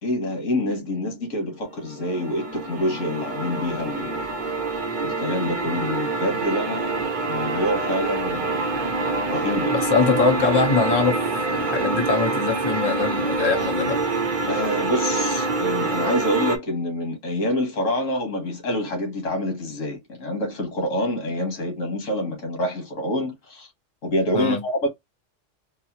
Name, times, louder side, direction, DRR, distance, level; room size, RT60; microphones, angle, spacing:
voice 1, 0.0-4.1 5.0-8.6 9.3-9.8 14.5-23.7 24.0-24.9, left 1 dB, 90° left, 1.6 m, -27 dB
sound 1, 1.6-16.6, right 3 dB, 45° right, 0.8 m, -26 dB
voice 2, 9.7-11.2 11.5-14.0 24.3-24.6, left 4 dB, 25° left, 0.7 m, -22 dB
4.0 x 2.0 x 2.8 m
omnidirectional pair, 1.3 m